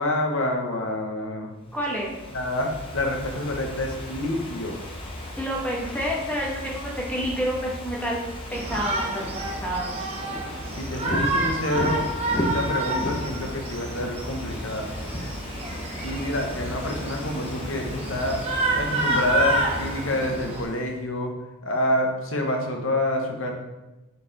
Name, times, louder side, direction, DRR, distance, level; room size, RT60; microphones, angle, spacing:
voice 1, 0.0-1.5 2.3-4.8 10.7-12.0 12.3-14.9 16.0-18.4 18.8-21.3 21.6-23.5, left 1 dB, 65° left, 2 dB, 1.1 m, -27 dB
Ocean / Fireworks, 1.7-21.0, left 1 dB, 25° left, 0.9 m, -35 dB
voice 2, 1.7-2.2 5.4-8.2 8.5-10.0, equal, 5° left, -3 dB, 1.2 m, -29 dB
Shout, 8.5-20.6, right 2 dB, 30° right, 0.9 m, -29 dB
6.7 x 4.7 x 4.0 m, 1.0 s
head